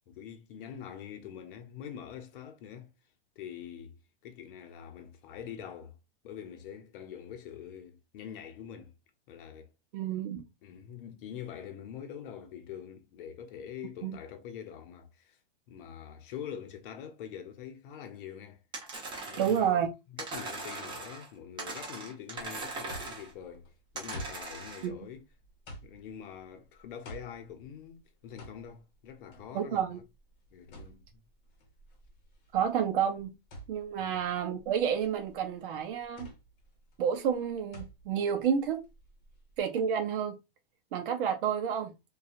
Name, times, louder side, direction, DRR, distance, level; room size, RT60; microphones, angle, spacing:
voice 1, 0.1-2.9 3.4-6.0 6.2-9.0 9.3-9.7 10.6-15.4 15.7-18.6 19.3-19.8 20.1-25.2 25.8-30.0 30.5-31.2 34.0-34.2, left 8 dB, 60° left, 0.7 m, -45 dB
voice 2, 9.9-10.4 14.0-14.2 19.4-19.9 24.8-25.0 29.5-30.0 32.5-33.3 33.7-36.3 37.0-38.9 39.6-40.4 40.9-41.9, right 8 dB, 60° right, 0.6 m, -30 dB
sound 1, 18.7-19.7 20.2-21.3 21.6-23.3 23.9-24.9, right 3 dB, 15° right, 0.9 m, -40 dB
sound 2, 22.9-39.6, equal, 40° left, 1.0 m, -50 dB
2.7 x 2.3 x 2.4 m
hypercardioid pair, 135°, 30 cm